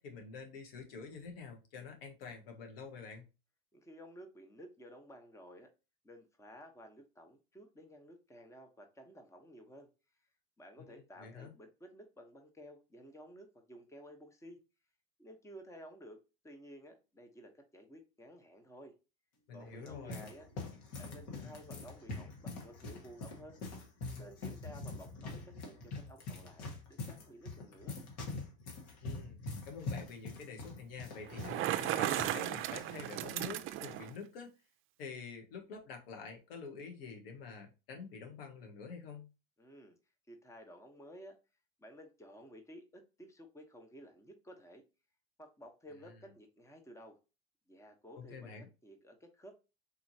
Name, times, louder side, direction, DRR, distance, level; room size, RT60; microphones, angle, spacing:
voice 1, 0.0-3.3 11.2-11.5 19.5-20.3 21.3-21.6 29.0-34.5 35.0-39.3 46.0-46.1 48.1-48.7, left 5 dB, 80° left, 3 dB, 1.3 m, -47 dB
voice 2, 3.7-5.7 6.0-9.9 10.6-14.6 15.2-18.9 19.5-20.5 20.9-23.6 24.1-28.0 39.6-40.0 40.3-41.4 41.8-44.8 45.4-47.2 47.7-49.5, equal, 10° left, 4 dB, 1.0 m, -54 dB
sound 1, 19.5-32.4 32.7-32.9 33.6-33.9, left 3 dB, 60° left, 1.6 m, -44 dB
Bicycle, 31.3-34.1, right 13 dB, 45° right, 0.5 m, -35 dB
4.2 x 3.1 x 2.7 m, 0.29 s
supercardioid pair, 95°, 29 cm